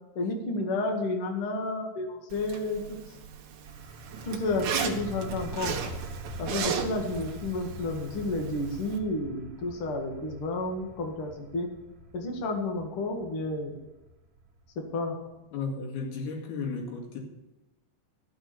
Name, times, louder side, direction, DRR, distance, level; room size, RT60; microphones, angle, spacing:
voice 1, 0.1-2.8 4.2-5.8 6.4-11.7 12.1-13.8 14.9-15.2, left 2 dB, 85° left, 2 dB, 1.2 m, -31 dB
Zipper (clothing), 2.3-9.0, right 7 dB, 85° right, 1.7 m, -37 dB
sound 1, 3.6-15.1, right 1 dB, 60° right, 1.8 m, -44 dB
voice 2, 15.5-17.2, left 4 dB, 60° left, 0 dB, 3.6 m, -34 dB
14.0 x 7.2 x 7.0 m, 1.0 s
omnidirectional pair, 5.7 m